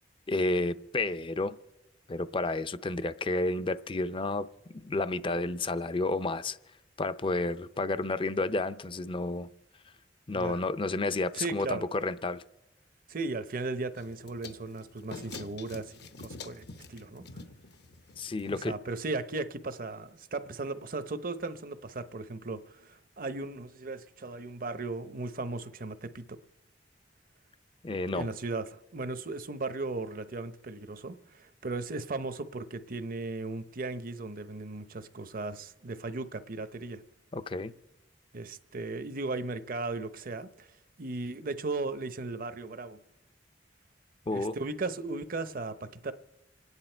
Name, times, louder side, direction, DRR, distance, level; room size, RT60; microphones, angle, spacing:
voice 1, 0.3-1.6 2.1-4.5 4.7-6.6 7.0-9.5 10.3-12.4 18.2-18.8 27.8-28.3 37.3-37.7 44.3-44.6, left 2 dB, 30° left, 0.5 m, -31 dB
voice 2, 11.3-11.8 13.1-15.9 16.2-16.6 16.9-17.4 18.4-26.4 28.1-37.0 38.3-40.7 41.0-43.0 44.3-46.1, right 3 dB, 50° right, 0.8 m, -36 dB
sound 1, 14.0-18.7, left 3 dB, 65° left, 0.9 m, -47 dB
27.0 x 9.9 x 4.4 m
head